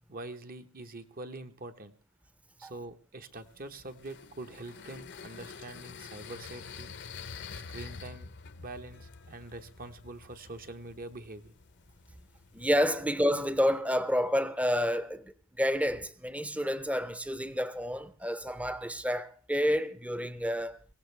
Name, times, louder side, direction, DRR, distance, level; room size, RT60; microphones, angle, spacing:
voice 1, 0.1-1.9 2.6-7.0 7.5-11.5, right 2 dB, 40° right, 1.2 m, -44 dB
sound 1, 3.4-13.8, left 5 dB, 55° left, 0.9 m, -48 dB
voice 2, 12.5-20.8, equal, 5° right, 0.8 m, -29 dB
23.5 x 17.0 x 3.4 m
head